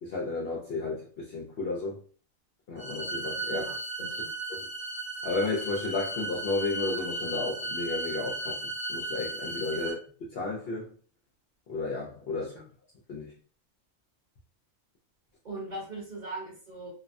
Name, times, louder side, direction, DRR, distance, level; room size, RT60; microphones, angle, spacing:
voice 1, 0.0-2.0 2.7-3.7 4.0-4.1 4.5-4.7 5.2-10.0 10.3-10.9 11.7-12.6 13.1-13.3, left 3 dB, 60° left, -3 dB, 0.7 m, -33 dB
sound 1, 2.8-9.9, right 2 dB, 35° left, 1.0 m, -35 dB
voice 2, 3.5-4.3 9.7-9.9 12.5-12.6 15.4-16.9, right 2 dB, 40° right, -5 dB, 0.9 m, -40 dB
2.6 x 2.1 x 2.4 m, 0.41 s
omnidirectional pair, 1.4 m